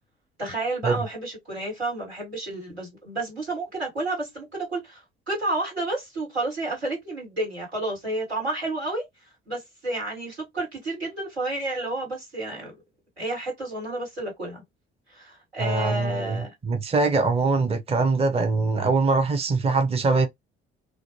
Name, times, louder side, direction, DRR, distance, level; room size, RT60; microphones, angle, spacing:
voice 1, 0.4-9.1 9.5-12.7 13.2-14.6 15.1-16.5, right 2 dB, 90° right, 1.6 m, -31 dB
voice 2, 15.6-20.3, right 3 dB, 20° right, 0.6 m, -23 dB
2.5 x 2.1 x 2.9 m
figure-of-eight pair, 50°, 31 cm